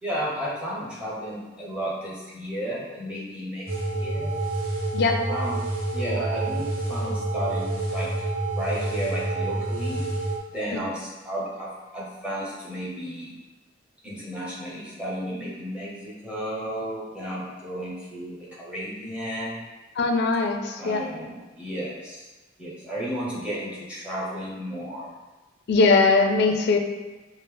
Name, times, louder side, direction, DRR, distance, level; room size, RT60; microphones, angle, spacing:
voice 1, 0.0-3.7 3.9-4.3 5.3-5.6 5.9-8.1 8.5-10.0 10.5-13.3 14.0-19.6 20.8-22.3 22.6-25.1, equal, 5° right, -7 dB, 1.0 m, -33 dB
sound 1, 3.7-10.4, right 2 dB, 50° right, 0.7 m, -28 dB
voice 2, 20.0-21.0 25.7-26.8, left 3 dB, 60° left, 4 dB, 0.4 m, -20 dB
5.2 x 2.0 x 3.4 m, 1.2 s
head